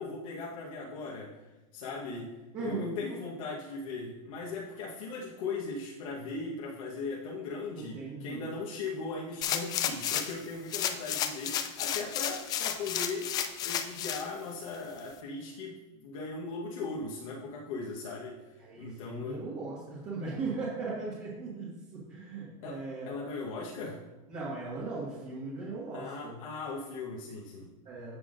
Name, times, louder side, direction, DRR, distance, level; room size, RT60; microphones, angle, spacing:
voice 1, 0.0-1.3 1.7-13.3 13.6-19.4 22.6-24.0 25.9-27.7, left 3 dB, 70° left, -4 dB, 1.3 m, -38 dB
voice 2, 2.5-3.1 7.7-8.5 18.6-23.1 24.3-26.4 27.9-28.2, right 3 dB, 30° right, -7 dB, 1.7 m, -38 dB
sound 1, 9.4-10.4 10.7-14.2 14.7-14.8, left 9 dB, 20° left, 0.4 m, -32 dB
11.0 x 5.8 x 2.6 m, 1.1 s
supercardioid pair, 160°, 18 cm